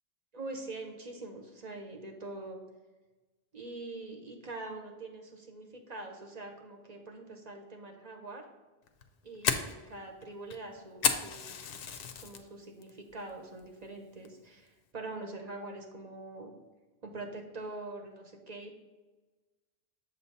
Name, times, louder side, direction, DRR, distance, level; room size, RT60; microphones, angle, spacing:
voice 1, 0.3-2.6 3.5-8.4 9.2-11.5 12.2-16.5 17.0-18.8, right 2 dB, 40° right, 2 dB, 0.9 m, -44 dB
Fire, 8.9-12.4 12.8-13.2 13.6-13.7 14.3-14.6, left 7 dB, 65° left, 0.7 m, -32 dB
7.2 x 2.8 x 5.3 m, 1.2 s
omnidirectional pair, 1.1 m